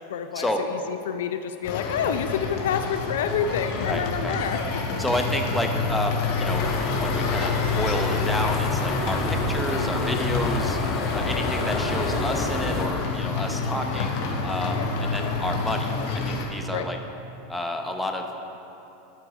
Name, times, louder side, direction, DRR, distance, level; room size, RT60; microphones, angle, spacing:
voice 1, 0.1-4.6 11.2-11.4 14.8-14.9 16.7-16.9, left 8 dB, 80° left, 8 dB, 0.4 m, -28 dB
sound 1, 1.6-16.5, left 4 dB, 65° left, 1.3 m, -28 dB
voice 2, 3.9-4.4 5.0-10.8 11.1-15.9 16.3-17.0 17.5-18.3, left 1 dB, 5° left, 2 dB, 0.9 m, -30 dB
sound 2, 6.4-12.9, left 3 dB, 30° left, 1.4 m, -29 dB
12.0 x 4.6 x 4.9 m, 2.9 s
hypercardioid pair, 110°, 0 cm